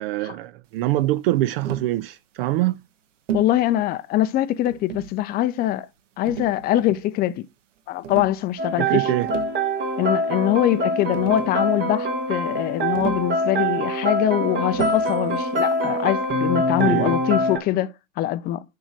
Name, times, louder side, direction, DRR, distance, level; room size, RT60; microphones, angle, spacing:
voice 1, 0.0-2.8 8.8-9.3 16.8-17.2, right 15 dB, 50° right, 0.5 m, -24 dB
Tap, 1.6-2.0 3.3-3.6 4.7-5.2 6.3-7.0 8.0-8.4 9.1-9.6 10.8-10.9 11.1-11.7 13.0-13.4 14.7-15.2 16.8-17.1, right 8 dB, 65° right, 1.0 m, -32 dB
voice 2, 3.3-5.9 6.2-7.5 7.9-9.0 10.0-18.6, left 13 dB, 25° left, 0.5 m, -23 dB
sound 1, 8.6-17.6, right 1 dB, 30° right, 2.0 m, -24 dB
6.2 x 4.7 x 6.2 m
figure-of-eight pair, 90°, 39 cm